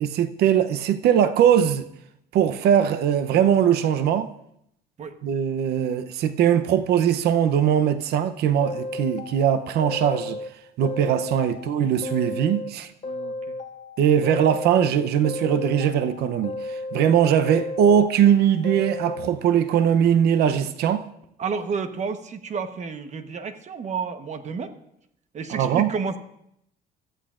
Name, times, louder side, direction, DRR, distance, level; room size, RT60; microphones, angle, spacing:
voice 1, 0.0-1.9 2.3-4.3 5.2-10.4 10.8-12.9 14.0-21.0 25.5-25.9, right 9 dB, 75° right, 0.7 m, -21 dB
sound 1, 8.6-10.5 10.8-12.7 13.0-14.9 15.2-17.1 17.4-19.3, left 2 dB, 40° left, 2.6 m, -34 dB
voice 2, 13.0-13.6 17.5-17.7 21.4-24.7 25.3-26.2, right 5 dB, 45° right, 1.1 m, -31 dB
26.0 x 14.0 x 2.5 m
cardioid pair, 110°, 17 cm